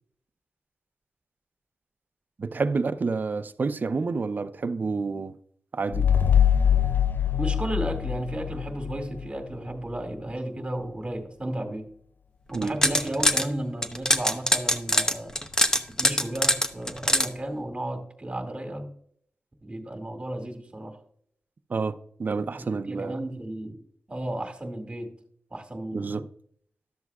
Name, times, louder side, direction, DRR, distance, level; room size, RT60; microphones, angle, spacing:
voice 1, 2.4-5.3 5.7-6.1 12.5-12.8 21.7-21.9 22.2-23.2 25.9-26.3, right 4 dB, 50° right, 0.6 m, -28 dB
sound 1, 5.9-9.3, left 9 dB, 55° left, 0.4 m, -23 dB
voice 2, 7.4-11.9 12.5-15.4 15.9-18.9 19.6-21.0 22.6-23.8 24.1-25.2 25.5-26.2, right 1 dB, 30° right, 2.1 m, -33 dB
sound 2, 12.5-13.5 13.8-17.3, left 1 dB, 15° left, 0.8 m, -23 dB
12.5 x 7.3 x 2.3 m
cardioid pair, 65°, 4 cm